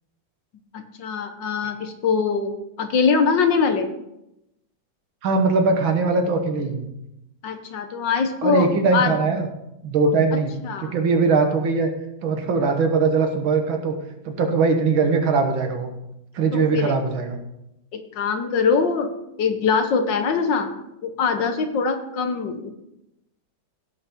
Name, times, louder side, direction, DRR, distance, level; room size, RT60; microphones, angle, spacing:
voice 1, 0.7-3.9 7.4-9.2 10.3-10.9 16.5-17.0 17.9-19.1 19.4-20.7 21.0-22.7, left 5 dB, 70° left, 7 dB, 1.6 m, -23 dB
voice 2, 5.2-6.9 8.4-9.5 9.8-10.5 10.8-11.9 12.2-14.0 14.3-15.9 16.3-17.4, right 4 dB, 80° right, 5 dB, 2.1 m, -21 dB
16.5 x 5.7 x 4.5 m, 0.87 s
omnidirectional pair, 2.2 m